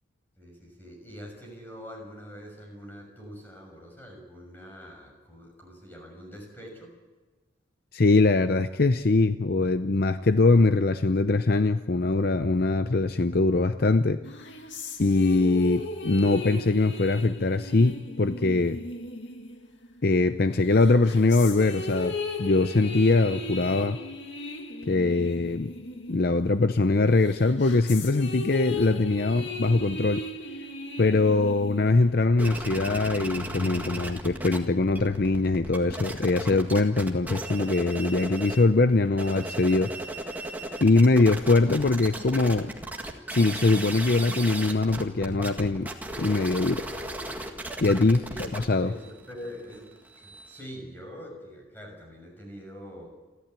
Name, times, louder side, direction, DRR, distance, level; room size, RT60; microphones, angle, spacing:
voice 1, 0.4-6.9 48.3-48.5 48.8-53.1, equal, 10° left, 1 dB, 6.2 m, -44 dB
voice 2, 7.9-14.2 15.0-18.8 20.0-24.0 24.9-25.7 26.1-30.2 31.0-39.9 40.8-42.7 43.3-45.9 46.2-46.9 47.8-48.3 48.5-48.9, left 3 dB, 50° left, 10 dB, 0.6 m, -22 dB
sound 1, 14.2-20.2 20.7-26.7 27.1-32.2, left 2 dB, 65° left, 2.2 m, -37 dB
sound 2, 32.4-34.6 34.8-38.7 39.1-50.6, right 1 dB, 10° right, 1.8 m, -36 dB
29.5 x 12.0 x 9.0 m, 1.3 s
head